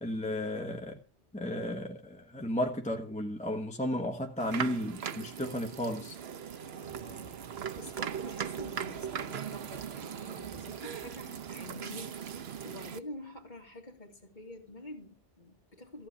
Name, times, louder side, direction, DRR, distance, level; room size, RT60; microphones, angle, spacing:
voice 1, 0.0-1.0 1.3-6.2, left 1 dB, 5° left, 1.2 m, -34 dB
sound 1, 4.4-13.0, right 8 dB, 60° right, 1.0 m, -39 dB
voice 2, 6.6-12.2 12.6-16.1, left 1 dB, 40° left, 2.7 m, -47 dB
sound 2, 6.7-11.7, right 2 dB, 35° right, 2.9 m, -58 dB
15.0 x 5.7 x 8.5 m
omnidirectional pair, 1.2 m